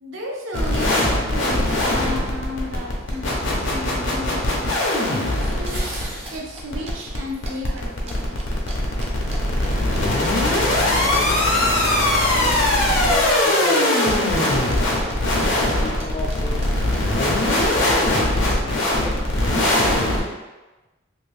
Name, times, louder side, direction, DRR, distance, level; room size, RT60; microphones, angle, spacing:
voice 1, 0.0-4.7 5.0-5.8 6.3-8.3, left 1 dB, 75° right, -1 dB, 0.6 m, -33 dB
sound 1, 0.5-20.2, left 1 dB, 75° left, 0.7 m, -21 dB
sound 2, 2.5-2.6 2.8-3.2 3.4-4.2 4.4-4.8 5.1-9.7 9.9-10.6 10.9-11.2 11.5-11.9 12.1-16.4 16.6-18.6, right 2 dB, 30° right, 0.4 m, -40 dB
sound 3, 4.6-4.7 5.5-6.4 7.0-7.6, right 1 dB, 60° right, 1.0 m, -35 dB
voice 2, 9.9-11.4 12.0-15.0 15.8-16.6 17.0-19.2 19.6-20.4, left 2 dB, 30° left, 1 dB, 0.4 m, -34 dB
2.9 x 2.6 x 3.3 m, 1.1 s
head